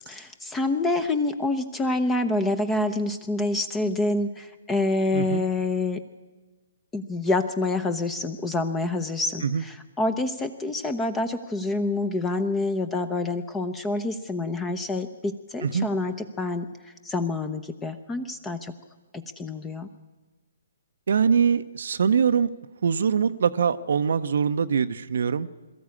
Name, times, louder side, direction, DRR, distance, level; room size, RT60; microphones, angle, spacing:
voice 1, 0.1-6.0 6.9-18.7 19.1-19.9, left 2 dB, 10° left, 10 dB, 0.8 m, -27 dB
voice 2, 5.1-5.4 9.4-9.6 15.6-15.9 21.1-22.5 22.8-25.5, right 6 dB, 60° right, 10 dB, 0.7 m, -23 dB
22.5 x 13.5 x 8.5 m, 1.3 s
figure-of-eight pair, 130°, 0 cm